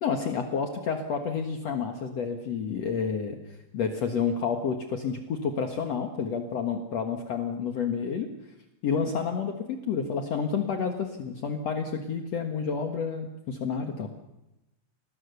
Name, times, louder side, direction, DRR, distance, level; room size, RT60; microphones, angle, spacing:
voice 1, 0.0-3.4 3.7-8.3 8.8-14.1, left 6 dB, 70° left, 4 dB, 1.6 m, -29 dB
28.5 x 19.5 x 6.9 m, 0.95 s
omnidirectional pair, 5.4 m